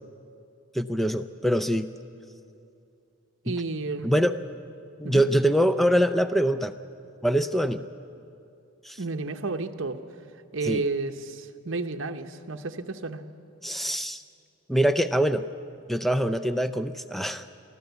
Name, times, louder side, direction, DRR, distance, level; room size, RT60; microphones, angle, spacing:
voice 1, 0.7-1.9 3.5-3.6 4.0-4.3 5.0-6.7 7.2-7.8 8.8-9.0 10.6-10.8 13.6-14.2 14.7-15.4 15.9-17.4, equal, ahead, 11 dB, 0.4 m, -24 dB
voice 2, 3.4-4.1 5.0-5.2 9.0-10.0 10.5-13.2, right 3 dB, 55° right, 7 dB, 0.9 m, -31 dB
24.0 x 14.0 x 8.1 m, 2.6 s
head